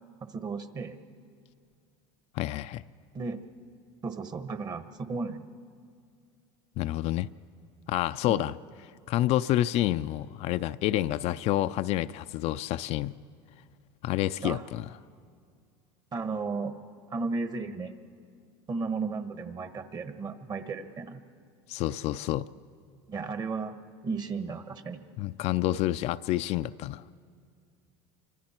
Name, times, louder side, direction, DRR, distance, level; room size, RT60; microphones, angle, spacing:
voice 1, 0.2-1.0 3.1-3.4 4.0-5.4 8.3-8.5 14.4-14.6 16.1-16.7 17.1-18.0 18.7-21.2 23.1-23.8 24.0-25.0, right 4 dB, 30° right, 9 dB, 1.3 m, -34 dB
voice 2, 2.3-2.8 6.8-7.3 7.9-8.5 9.1-13.2 14.0-14.9 21.7-22.5 25.2-27.0, left 14 dB, 55° left, 12 dB, 0.5 m, -28 dB
30.0 x 25.0 x 4.4 m, 2.2 s
supercardioid pair, 120°, 13 cm